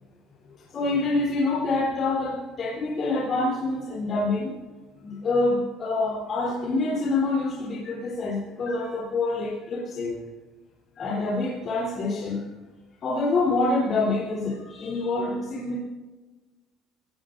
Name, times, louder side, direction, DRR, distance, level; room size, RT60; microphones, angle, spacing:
voice 1, 0.7-4.6 5.0-10.2 11.0-12.4 13.0-15.8, left 3 dB, 35° left, -5 dB, 3.6 m, -26 dB
25.0 x 17.0 x 2.7 m, 1.2 s
cardioid pair, 160°, 0 cm